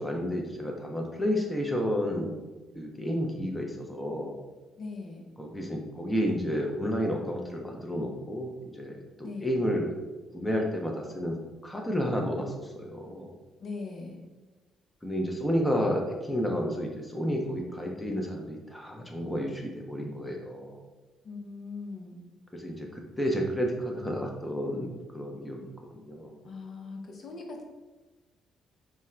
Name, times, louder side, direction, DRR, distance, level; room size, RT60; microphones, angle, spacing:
voice 1, 0.0-2.3 2.7-4.3 5.4-9.9 10.3-11.4 11.6-13.3 15.0-20.8 22.5-22.9 23.2-25.7 26.1-26.3, equal, 10° left, 0 dB, 0.8 m, -31 dB
voice 2, 4.8-5.3 9.2-9.6 13.6-14.3 21.2-22.2 26.4-27.6, left 3 dB, 55° left, 1 dB, 0.8 m, -40 dB
3.6 x 2.2 x 4.3 m, 1.2 s
supercardioid pair, 75°, 0 cm